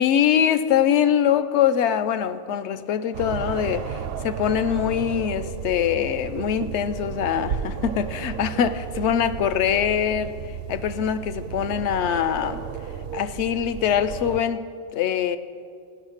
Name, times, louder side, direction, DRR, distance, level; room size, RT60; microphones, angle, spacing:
voice 1, 0.0-12.6 13.1-14.6 14.9-15.4, left 9 dB, 70° left, 12 dB, 0.8 m, -23 dB
sound 1, 3.1-14.4, right 8 dB, 85° right, 1.0 m, -33 dB
16.0 x 6.3 x 6.4 m, 2.2 s
omnidirectional pair, 1.3 m